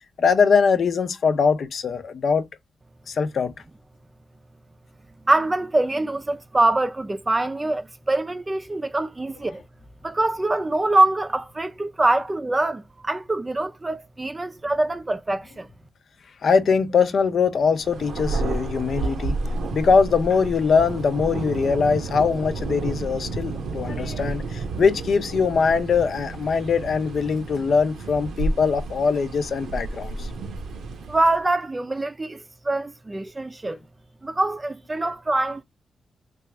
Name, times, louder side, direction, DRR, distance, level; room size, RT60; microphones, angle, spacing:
voice 1, 0.0-2.5 3.1-3.5 16.4-19.4 19.7-30.3, left 5 dB, 70° left, 0.6 m, -22 dB
voice 2, 5.3-9.6 10.0-15.7 31.1-33.8 34.2-35.6, right 2 dB, 25° right, 0.4 m, -24 dB
Thunder, 17.8-31.4, right 3 dB, 85° right, 0.7 m, -31 dB
3.3 x 2.4 x 3.2 m
cardioid pair, 60°, 0 cm